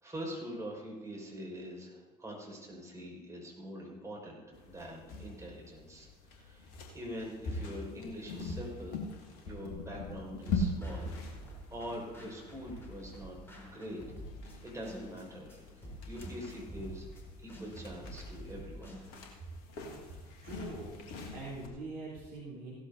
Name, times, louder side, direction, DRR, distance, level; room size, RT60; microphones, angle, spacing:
voice 1, 0.0-9.0 9.4-11.1 11.7-13.4 13.6-14.0 14.6-17.1 17.4-18.9, equal, 15° right, -3 dB, 4.9 m, -44 dB
sound 1, 4.5-21.7, left 2 dB, 60° left, 1.8 m, -43 dB
sound 2, 10.5-19.3, right 1 dB, 10° left, 3.9 m, -49 dB
voice 2, 20.4-22.7, right 2 dB, 45° right, -6 dB, 3.6 m, -44 dB
16.5 x 13.5 x 2.7 m, 1.2 s
figure-of-eight pair, 65°, 21 cm